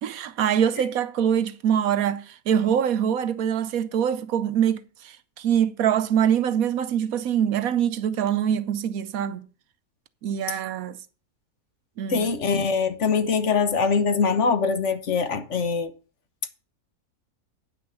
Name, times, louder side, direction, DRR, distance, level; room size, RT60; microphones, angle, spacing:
voice 1, 0.0-9.5 10.2-11.0 12.0-12.3, right 9 dB, 70° right, 1.1 m, -24 dB
voice 2, 12.1-15.9, left 5 dB, 55° left, 1.1 m, -23 dB
9.4 x 6.1 x 6.7 m
omnidirectional pair, 1.6 m